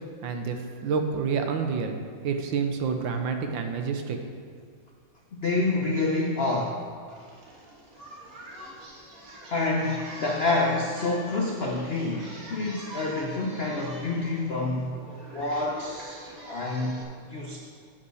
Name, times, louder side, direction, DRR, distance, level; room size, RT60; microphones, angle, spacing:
voice 1, 0.2-2.0 2.2-4.2, right 5 dB, 70° right, 5 dB, 1.4 m, -28 dB
voice 2, 5.4-6.8 9.5-15.0 15.3-17.6, left 2 dB, 80° left, -1 dB, 0.5 m, -28 dB
Singing, 7.1-17.0, equal, 45° right, 1.8 m, -44 dB
8.5 x 5.4 x 6.3 m, 2.1 s
omnidirectional pair, 2.2 m